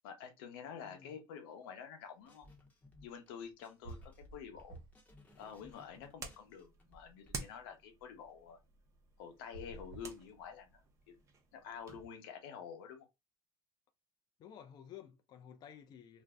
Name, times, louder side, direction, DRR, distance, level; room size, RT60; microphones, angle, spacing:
voice 1, 0.0-2.5 3.0-4.0 4.3-4.8 5.4-8.6 9.2-11.1 11.5-13.1, left 7 dB, 85° left, 0.8 m, -49 dB
voice 2, 0.8-1.2 14.4-16.2, left 9 dB, 40° left, 0.4 m, -53 dB
sound 1, 2.3-3.3 3.6-7.3, left 2 dB, 15° left, 0.8 m, -62 dB
sound 2, 3.4-3.5 3.8-5.2 5.5-6.6 9.3-10.9, right 2 dB, 65° right, 1.0 m, -53 dB
sound 3, 5.3-12.1, right 4 dB, 25° right, 0.6 m, -51 dB
2.6 x 2.0 x 3.4 m
supercardioid pair, 125°, 11 cm